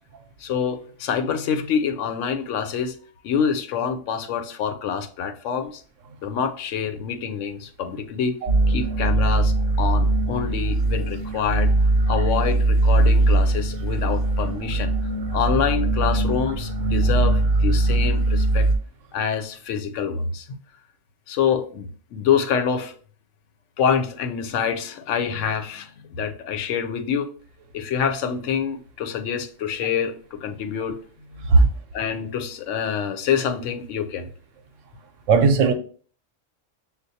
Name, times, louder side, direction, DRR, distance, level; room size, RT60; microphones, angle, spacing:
voice 1, 0.4-3.0 3.2-5.8 6.2-8.4 8.7-11.7 12.1-14.9 15.3-18.7 19.1-20.6 21.3-22.9 23.8-27.3 27.7-31.0 31.4-31.5 31.9-34.3, left 7 dB, 80° left, 0.9 m, -26 dB
sound 1, 8.5-18.8, right 2 dB, 55° right, 0.7 m, -21 dB
voice 2, 35.3-35.7, right 4 dB, 85° right, 1.0 m, -16 dB
6.5 x 2.3 x 2.6 m
omnidirectional pair, 1.3 m